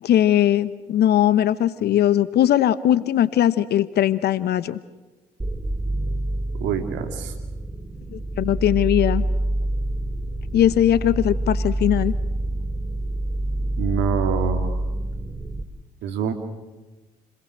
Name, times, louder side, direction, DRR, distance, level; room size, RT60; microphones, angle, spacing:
voice 1, 0.0-4.8 8.1-9.2 10.5-12.1, left 11 dB, 55° left, 16 dB, 1.1 m, -19 dB
sound 1, 5.4-15.6, right 1 dB, 15° right, 2.8 m, -27 dB
voice 2, 6.6-7.3 13.8-14.8 16.0-16.3, right 7 dB, 65° right, 6 dB, 2.7 m, -25 dB
30.0 x 21.5 x 6.5 m, 1.2 s
hypercardioid pair, 60°, 20 cm